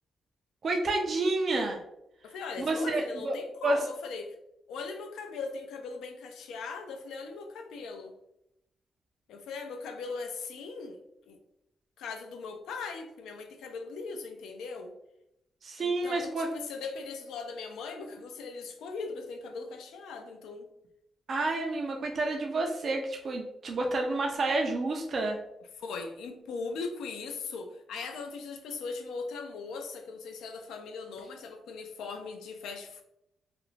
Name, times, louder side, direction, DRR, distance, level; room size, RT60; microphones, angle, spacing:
voice 1, 0.6-1.8 2.6-3.4 3.6-3.8 15.6-16.5 21.3-25.4, right 2 dB, 50° right, 1 dB, 0.3 m, -29 dB
voice 2, 2.2-4.4 4.7-8.1 9.3-11.4 12.0-14.9 15.8-20.7 25.8-33.0, left 4 dB, 90° left, 5 dB, 0.4 m, -39 dB
2.4 x 2.0 x 3.1 m, 0.83 s
cardioid pair, 85°, 0 cm